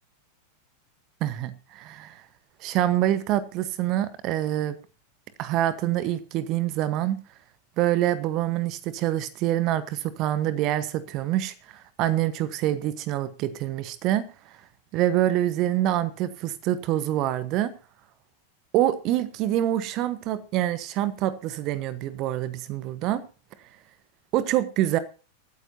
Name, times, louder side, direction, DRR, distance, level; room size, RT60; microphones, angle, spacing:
voice 1, 1.2-2.2 2.6-4.8 5.4-7.2 7.8-14.3 14.9-17.7 18.7-23.2 24.3-25.0, right 13 dB, 40° right, 1.1 m, -26 dB
23.0 x 9.2 x 2.7 m
figure-of-eight pair, 90°, 0 cm